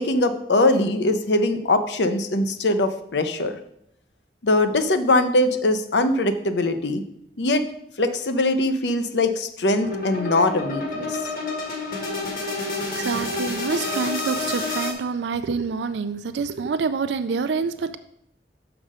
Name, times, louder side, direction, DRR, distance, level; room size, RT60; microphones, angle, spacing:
voice 1, 0.0-3.6 4.4-7.0 7.4-7.6 8.0-11.2, left 2 dB, 70° left, 10 dB, 0.7 m, -21 dB
sound 1, 9.8-14.9, left 2 dB, 55° left, 1.6 m, -29 dB
voice 2, 12.9-18.0, right 5 dB, 70° right, 11 dB, 0.4 m, -27 dB
6.5 x 5.9 x 4.9 m, 0.74 s
head